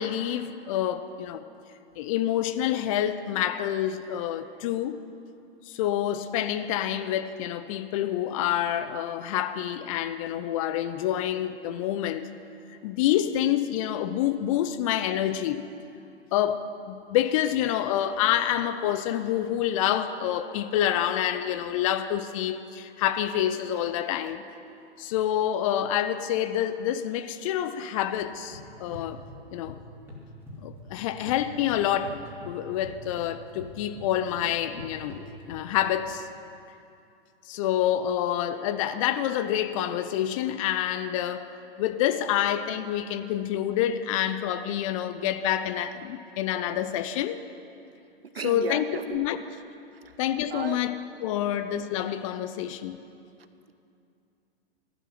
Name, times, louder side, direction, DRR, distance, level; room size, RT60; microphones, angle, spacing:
voice 1, 0.0-1.4 2.0-5.0 5.7-12.3 12.8-15.7 16.3-24.4 25.0-29.2 29.5-29.8 30.6-32.2 32.5-35.2 35.5-36.3 37.5-41.5 41.8-47.4 48.4-49.4 50.2-53.0, left 11 dB, 35° left, 0.6 m, -27 dB
sound 1, 28.2-29.8 30.1-31.4 31.7-36.0, left 1 dB, 5° right, 3.7 m, -44 dB
voice 2, 48.3-49.2 50.0-50.2 50.5-50.8 51.3-51.6, right 6 dB, 75° right, 1.0 m, -35 dB
14.5 x 12.0 x 6.0 m
figure-of-eight pair, 110°, 30 cm